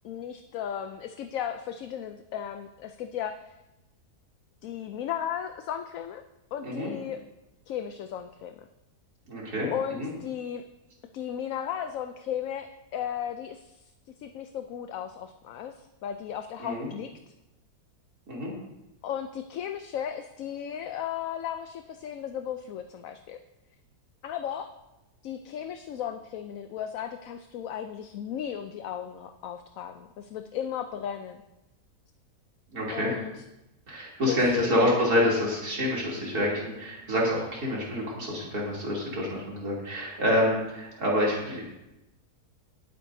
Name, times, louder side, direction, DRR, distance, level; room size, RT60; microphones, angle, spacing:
voice 1, 0.0-3.5 4.6-6.2 6.5-7.2 7.7-8.6 9.7-10.6 11.1-13.9 14.2-17.3 19.0-23.4 24.2-24.7 25.2-31.4 32.9-33.4 34.3-35.0, left 9 dB, 65° left, 8 dB, 0.9 m, -35 dB
voice 2, 9.3-9.7 10.0-10.1 16.6-16.9 18.3-18.5 32.7-33.1 33.9-41.6, left 1 dB, 70° right, -5 dB, 3.5 m, -27 dB
19.0 x 9.2 x 2.7 m, 0.95 s
omnidirectional pair, 1.7 m